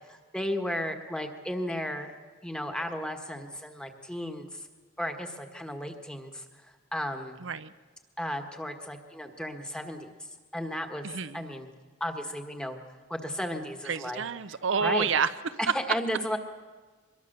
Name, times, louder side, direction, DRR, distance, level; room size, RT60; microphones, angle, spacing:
voice 1, 0.1-2.1 2.4-4.7 5.0-6.4 6.9-7.4 8.2-10.1 10.5-11.1 11.3-11.7 12.0-12.8 13.1-14.2 14.8-15.1 15.6-16.4, equal, 5° left, 4 dB, 1.4 m, -34 dB
voice 2, 7.4-7.7 11.0-11.4 13.9-15.3, right 6 dB, 65° right, 11 dB, 0.6 m, -29 dB
23.5 x 22.0 x 6.7 m, 1.4 s
head